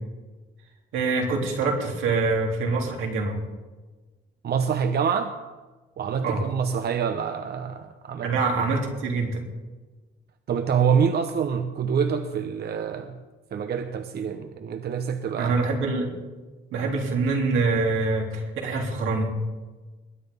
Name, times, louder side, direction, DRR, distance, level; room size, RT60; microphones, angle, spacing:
voice 1, 0.9-3.4 6.2-6.4 8.2-9.4 15.4-16.1 16.7-19.3, right 3 dB, 85° right, 0 dB, 3.3 m, -25 dB
voice 2, 4.4-5.4 6.0-8.3 10.5-13.2 13.5-15.6, right 7 dB, 55° right, 8 dB, 0.9 m, -26 dB
21.0 x 9.0 x 5.5 m, 1.3 s
cardioid pair, 90°, 20 cm